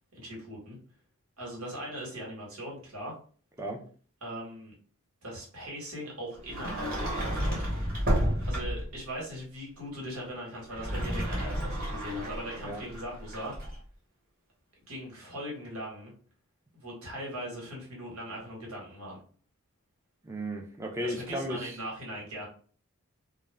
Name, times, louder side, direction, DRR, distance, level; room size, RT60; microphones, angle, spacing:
voice 1, 0.1-0.8 1.4-3.1 4.2-4.8 5.2-7.6 8.4-13.5 14.9-16.1 16.7-19.2 21.0-22.5, equal, 90° right, 1.3 m, -40 dB
Sliding door, 6.4-9.0 10.6-13.8, equal, 45° right, 1.1 m, -31 dB
voice 2, 20.2-21.7, equal, 15° right, 0.4 m, -35 dB
2.3 x 2.2 x 3.3 m
head